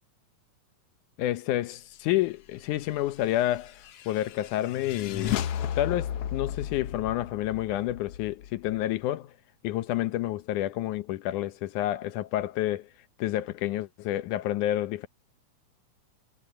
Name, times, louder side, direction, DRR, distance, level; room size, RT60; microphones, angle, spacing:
voice 1, 1.2-3.7 4.1-5.5 5.8-9.3 9.6-12.9 13.2-15.1, left 14 dB, 75° left, 2.2 m, -29 dB
sound 1, 3.2-8.8, left 9 dB, 90° left, 1.2 m, -34 dB
omnidirectional pair, 3.9 m